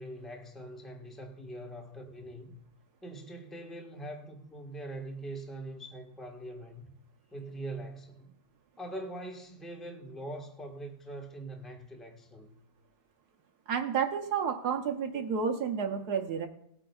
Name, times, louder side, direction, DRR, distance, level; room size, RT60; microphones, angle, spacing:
voice 1, 0.0-2.6 3.0-6.9 7.3-8.3 8.8-12.5, right 1 dB, ahead, 1.1 m, -43 dB
voice 2, 13.7-16.5, right 6 dB, 75° right, 1.3 m, -31 dB
19.0 x 8.9 x 2.3 m
omnidirectional pair, 1.8 m